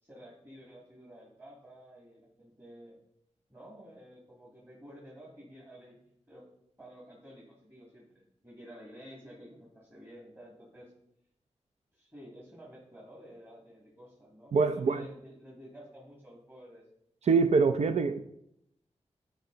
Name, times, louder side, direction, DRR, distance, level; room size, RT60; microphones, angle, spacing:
voice 1, 0.0-3.0 3.5-6.0 6.3-6.5 6.8-10.9 11.9-16.8, equal, 20° right, -4 dB, 2.4 m, -51 dB
voice 2, 14.5-15.0 17.2-18.2, right 4 dB, 65° right, 8 dB, 0.5 m, -24 dB
12.0 x 4.6 x 3.9 m, 0.76 s
wide cardioid pair, 70°, 12 cm